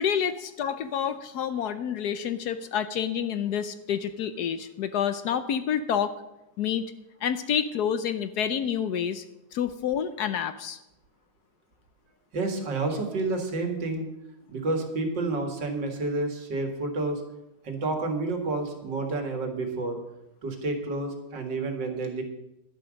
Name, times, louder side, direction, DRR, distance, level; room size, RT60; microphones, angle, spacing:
voice 1, 0.0-6.1 6.6-6.9 7.2-9.2 9.5-10.8, left 8 dB, 70° left, 11 dB, 1.1 m, -28 dB
voice 2, 12.3-14.1 14.5-17.2 17.6-20.0 20.4-22.2, right 3 dB, 75° right, 4 dB, 2.6 m, -29 dB
11.5 x 10.5 x 6.3 m, 0.90 s
omnidirectional pair, 2.0 m